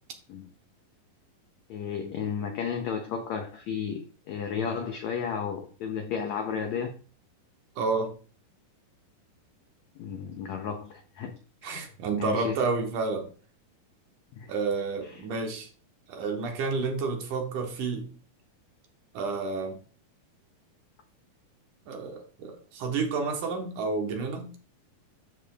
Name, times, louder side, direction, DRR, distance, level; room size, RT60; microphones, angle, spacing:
voice 1, 1.7-7.0 10.0-11.3 11.6-11.9 12.2-12.7 14.3-14.5 15.1-15.2, left 7 dB, 85° left, 1.5 m, -33 dB
voice 2, 7.8-8.1 11.6-13.3 14.5-15.7 16.1-18.1 19.1-19.8 21.9-24.5, right 4 dB, 65° right, 2.3 m, -30 dB
13.0 x 5.0 x 2.4 m
omnidirectional pair, 4.3 m